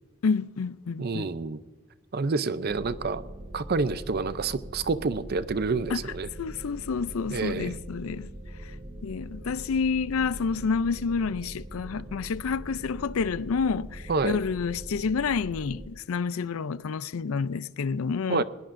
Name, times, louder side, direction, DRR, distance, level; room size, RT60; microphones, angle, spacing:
voice 1, 0.2-1.3 5.9-6.0 6.4-8.3 9.0-18.4, left 5 dB, 75° left, 0.4 m, -29 dB
voice 2, 1.0-1.6 2.1-3.2 3.5-6.3 7.3-7.8 14.1-14.4 18.3-18.4, right 4 dB, 45° right, 0.5 m, -28 dB
sound 1, 2.7-15.9, right 1 dB, 25° right, 1.1 m, -42 dB
21.0 x 18.5 x 2.6 m
head